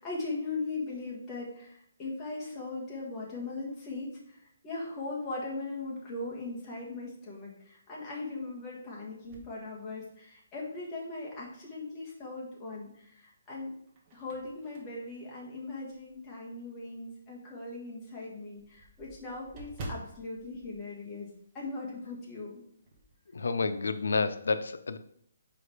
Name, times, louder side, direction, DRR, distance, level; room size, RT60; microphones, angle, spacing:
voice 1, 0.0-4.4 4.6-13.7 14.1-21.3 21.5-22.6, left 3 dB, 10° left, -5 dB, 1.4 m, -39 dB
sound 1, 9.2-10.6 11.1-11.2 12.7-13.2 13.7-16.3 16.8-16.9 17.3-17.4 17.6-17.7 18.0-21.8 22.0-22.3 22.6-23.2, right 1 dB, 20° right, 1.0 m, -48 dB
voice 2, 23.3-25.0, left 4 dB, 85° left, 12 dB, 0.6 m, -29 dB
5.1 x 4.8 x 4.9 m, 0.68 s
hypercardioid pair, 175°, 0 cm